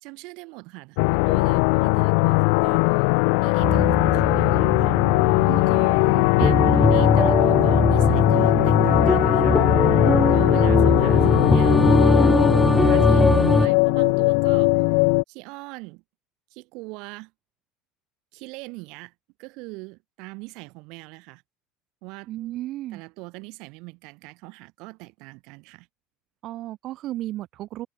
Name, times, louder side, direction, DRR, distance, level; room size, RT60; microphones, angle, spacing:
voice 1, 0.0-3.0 3.4-5.0 5.5-6.0 6.3-9.6 10.3-14.8 15.3-16.0 16.5-17.3 18.3-19.1 19.4-21.4 22.0-22.3 22.9-25.9, right 27 dB, 70° right, 3.2 m, -40 dB
sound 1, 1.0-15.2, left 38 dB, 75° left, 0.8 m, -20 dB
sound 2, 3.6-13.7, left 1 dB, ahead, 0.4 m, -21 dB
voice 2, 22.3-23.0 26.4-27.9, right 15 dB, 55° right, 3.2 m, -33 dB
supercardioid pair, 120°, 0 cm